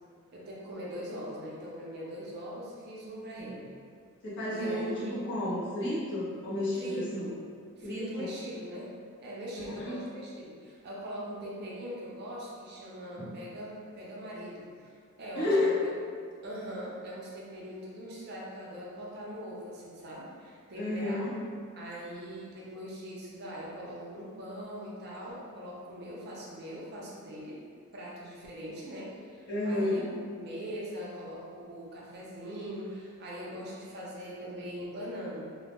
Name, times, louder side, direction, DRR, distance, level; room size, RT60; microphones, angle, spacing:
voice 1, 0.3-3.7 4.5-5.2 6.7-7.3 7.8-8.9 9.2-15.7 16.4-21.2 21.7-27.6 27.9-35.4, equal, 50° right, -5 dB, 0.5 m, -41 dB
voice 2, 4.2-7.2 7.8-8.3 9.6-10.0 13.2-13.3 15.4-15.8 20.7-21.3 29.5-30.0, left 1 dB, 55° left, -9 dB, 0.8 m, -31 dB
2.1 x 2.1 x 2.9 m, 2.1 s
head